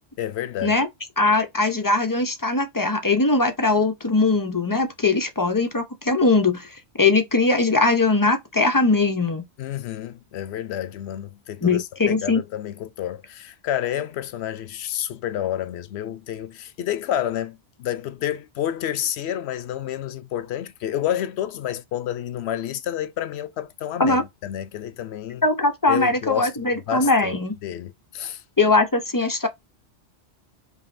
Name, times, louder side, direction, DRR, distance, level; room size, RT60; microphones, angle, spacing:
voice 1, 0.2-0.8 9.6-25.4 25.9-26.5 26.9-27.4 27.6-28.4, left 11 dB, 80° left, 0.8 m, -29 dB
voice 2, 1.2-9.4 11.6-12.4 24.0-24.2 25.4-27.5 28.6-29.5, left 3 dB, 30° left, 0.4 m, -20 dB
5.2 x 2.4 x 2.6 m
omnidirectional pair, 1.1 m